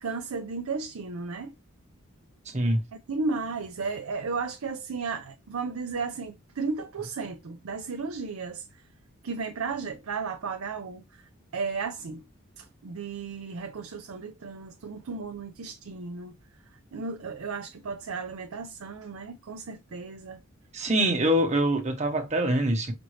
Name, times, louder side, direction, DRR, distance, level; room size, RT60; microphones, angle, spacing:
voice 1, 0.0-1.5 3.1-8.6 9.2-11.2 11.5-12.2 12.6-16.3 16.9-20.4, right 4 dB, 75° right, 0.5 m, -34 dB
voice 2, 20.7-22.9, right 1 dB, 35° right, 1.1 m, -24 dB
5.1 x 2.7 x 3.2 m
head